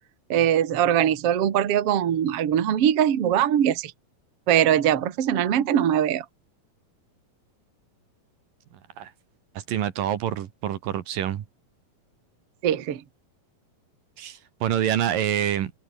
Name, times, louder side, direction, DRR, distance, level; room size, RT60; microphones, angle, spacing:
voice 1, 0.3-3.9 4.5-6.3 12.6-13.0, right 10 dB, 50° right, 2.2 m, -21 dB
voice 2, 9.7-11.4 14.2-15.7, right 10 dB, 65° right, 3.1 m, -26 dB
omnidirectional pair, 4.3 m